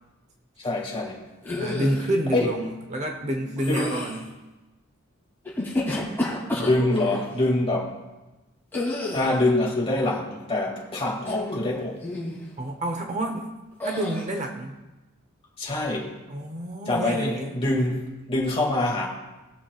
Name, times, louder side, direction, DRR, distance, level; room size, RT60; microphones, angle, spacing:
voice 1, 0.6-1.2 2.3-2.5 3.6-4.0 6.5-7.9 9.1-12.0 15.6-16.1 16.9-19.1, left 2 dB, 25° left, -2 dB, 2.2 m, -25 dB
sound 1, 1.4-2.1 3.6-4.2 5.4-7.2 8.7-9.4 11.2-11.7 12.0-12.4 13.8-14.2, left 2 dB, 10° left, 2.7 m, -30 dB
voice 2, 1.6-4.2 12.6-13.5 13.8-14.8 16.3-17.5, right 1 dB, 35° right, 3 dB, 0.8 m, -28 dB
20.0 x 7.2 x 2.4 m, 1.1 s
head